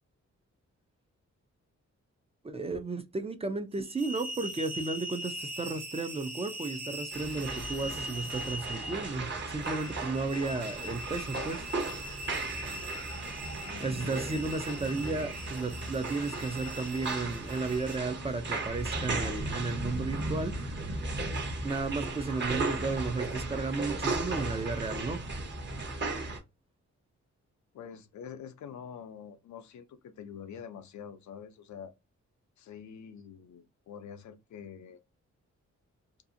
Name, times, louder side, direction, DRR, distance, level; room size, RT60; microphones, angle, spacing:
voice 1, 2.4-11.7 13.8-21.1 21.6-25.4, right 3 dB, 20° right, 0.3 m, -34 dB
sound 1, 3.7-18.0, equal, 60° right, 1.1 m, -42 dB
sound 2, 7.1-26.4, right 2 dB, 40° right, 0.8 m, -36 dB
voice 2, 13.6-14.2 27.7-31.9 32.6-35.0, left 7 dB, 80° left, 0.5 m, -46 dB
sound 3, 14.0-20.0, left 2 dB, 80° right, 1.3 m, -56 dB
2.6 x 2.4 x 2.5 m
wide cardioid pair, 110°, 29 cm